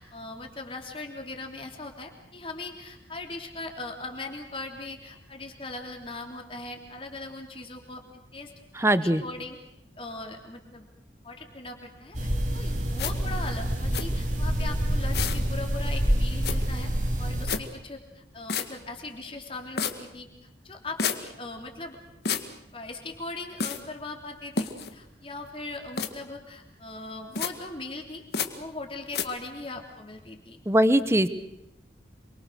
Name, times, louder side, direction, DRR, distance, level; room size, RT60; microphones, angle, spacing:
voice 1, 0.0-8.0 8.3-9.6 10.0-10.8 11.2-16.9 17.2-20.3 20.6-22.0 22.7-28.2 28.5-30.6, left 2 dB, 30° left, 3 dB, 3.4 m, -39 dB
voice 2, 8.8-9.2 30.7-31.3, right 1 dB, 15° right, 13 dB, 1.1 m, -21 dB
sound 1, 12.1-17.5, equal, 45° right, 3.5 m, -27 dB
sound 2, 13.0-13.1 13.9-14.0 15.1-15.4 16.4-16.6 17.5-17.6 18.5-18.7 19.8-19.9 21.0-21.2 22.2-22.4 23.6-23.8 24.6-24.9 26.0-26.1 27.3-27.5 28.3-28.5 29.1-29.2, left 6 dB, 70° left, 2.0 m, -28 dB
27.5 x 24.0 x 6.5 m, 0.82 s
head